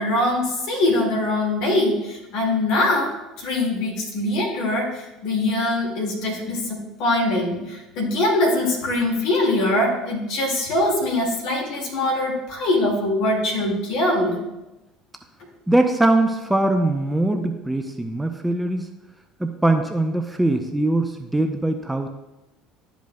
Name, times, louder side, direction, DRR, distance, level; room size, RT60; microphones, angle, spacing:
voice 1, 0.0-14.4, left 1 dB, 55° left, -2 dB, 2.0 m, -23 dB
voice 2, 15.7-18.9 19.4-22.1, right 2 dB, 5° right, 5 dB, 0.6 m, -21 dB
12.0 x 5.1 x 2.3 m, 1.0 s
figure-of-eight pair, 60°, 0 cm